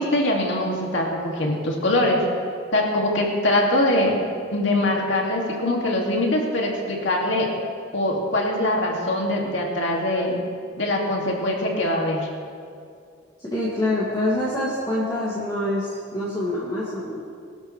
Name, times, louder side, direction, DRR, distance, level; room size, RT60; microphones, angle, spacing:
voice 1, 0.0-2.2 2.7-4.2 4.5-7.6 7.9-10.4 10.8-12.3, left 1 dB, 70° left, -1 dB, 2.3 m, -23 dB
voice 2, 13.4-17.2, left 1 dB, 20° left, -9 dB, 2.3 m, -25 dB
22.5 x 12.5 x 3.2 m, 2.3 s
head